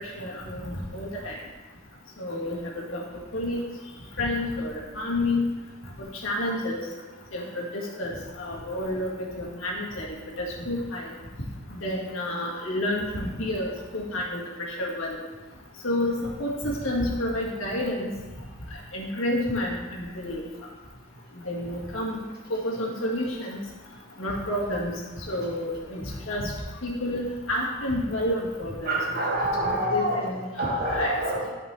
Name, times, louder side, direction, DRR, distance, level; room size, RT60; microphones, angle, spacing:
voice 1, 0.0-1.4 2.2-3.0 3.3-3.7 4.2-5.5 6.0-6.8 7.3-10.1 10.4-11.1 11.7-15.2 15.8-18.1 18.9-20.4 21.5-22.2 22.5-23.6 24.2-24.9 25.3-26.5 26.8-28.9 29.6-30.5 30.9-31.1, left 1 dB, 85° left, -3 dB, 1.9 m, -29 dB
voice 2, 28.8-30.3 30.6-31.5, right 1 dB, 50° right, -3 dB, 1.9 m, -27 dB
12.0 x 5.2 x 3.3 m, 1.2 s
head